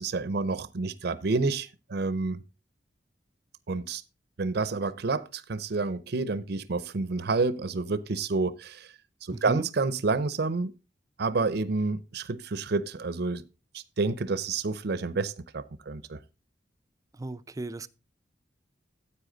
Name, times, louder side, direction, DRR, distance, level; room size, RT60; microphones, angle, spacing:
voice 1, 0.0-2.4 3.7-4.0 4.4-8.9 9.3-10.7 11.2-13.4 13.7-16.2, right 3 dB, 60° right, 0.6 m, -29 dB
voice 2, 9.3-9.7 17.1-17.9, right 2 dB, 20° right, 0.4 m, -35 dB
9.9 x 8.3 x 3.8 m
head